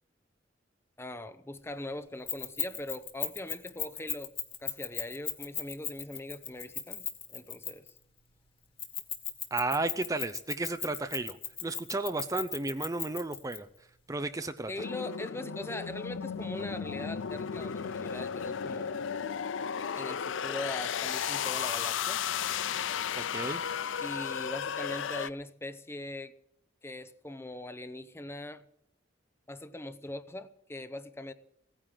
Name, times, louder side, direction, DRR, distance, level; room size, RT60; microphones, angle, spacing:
voice 1, 1.0-4.3 4.6-7.9 14.7-19.0 20.0-22.2 24.0-26.3 26.8-28.6 29.5-31.3, left 1 dB, 15° left, 12 dB, 0.7 m, -41 dB
Keys jangling, 2.3-8.0 8.8-13.6, left 8 dB, 30° left, 1.8 m, -36 dB
voice 2, 9.5-13.7 14.1-14.7 23.2-23.6, right 2 dB, 20° right, 10 dB, 0.6 m, -33 dB
sound 1, 14.8-25.3, left 7 dB, 85° left, 0.5 m, -34 dB
17.5 x 10.0 x 7.5 m, 0.77 s
head